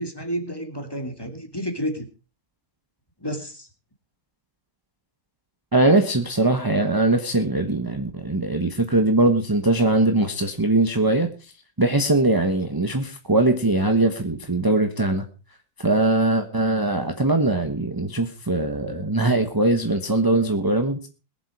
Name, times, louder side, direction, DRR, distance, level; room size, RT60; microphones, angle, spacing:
voice 1, 0.0-2.1 3.2-3.7, equal, 10° left, 5 dB, 2.1 m, -30 dB
voice 2, 5.7-11.5 11.8-15.2 15.8-21.1, right 2 dB, 15° right, 6 dB, 0.9 m, -21 dB
22.0 x 7.6 x 4.9 m, 0.33 s
omnidirectional pair, 2.3 m